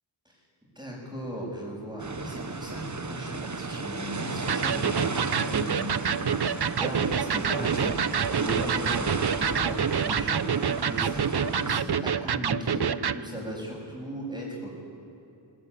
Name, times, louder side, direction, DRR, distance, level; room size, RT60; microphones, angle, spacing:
voice 1, 0.7-10.5 10.8-14.8, equal, 10° right, -7 dB, 7.6 m, -36 dB
sound 1, 2.0-11.8, right 4 dB, 35° right, 1.2 m, -34 dB
Electric guitar, 4.5-13.2, right 7 dB, 55° right, 0.8 m, -27 dB
24.0 x 18.5 x 10.0 m, 2.9 s
wide cardioid pair, 55°, 48 cm